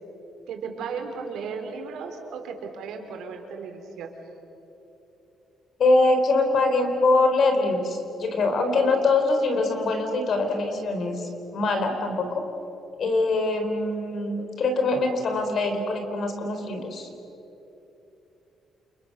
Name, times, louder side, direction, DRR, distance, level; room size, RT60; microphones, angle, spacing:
voice 1, 0.5-4.1, right 5 dB, 75° right, 4 dB, 4.0 m, -35 dB
voice 2, 5.8-12.4 13.0-17.1, left 2 dB, 45° left, 6 dB, 4.0 m, -23 dB
30.0 x 29.0 x 6.8 m, 3.0 s
cardioid pair, 160°, 0 cm